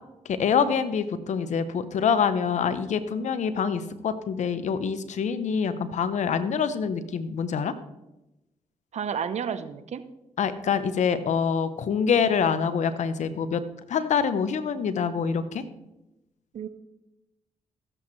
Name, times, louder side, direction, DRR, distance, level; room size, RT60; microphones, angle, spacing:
voice 1, 0.2-7.7 10.4-13.6 13.9-15.6, left 6 dB, 70° left, 12 dB, 0.9 m, -25 dB
voice 2, 8.9-10.0 16.5-16.7, right 7 dB, 65° right, 12 dB, 0.8 m, -31 dB
16.0 x 7.8 x 3.2 m, 0.94 s
supercardioid pair, 50°, 13 cm